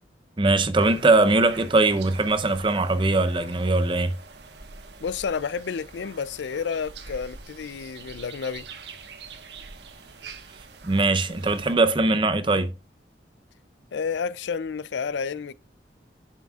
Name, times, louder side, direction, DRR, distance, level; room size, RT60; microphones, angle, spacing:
voice 1, 0.4-4.2 10.8-12.7, right 2 dB, 30° right, 0.6 m, -21 dB
sound 1, 0.7-11.8, right 4 dB, 75° right, 1.3 m, -45 dB
voice 2, 5.0-8.7 13.9-15.5, left 6 dB, 85° left, 0.4 m, -30 dB
11.5 x 5.8 x 2.4 m
head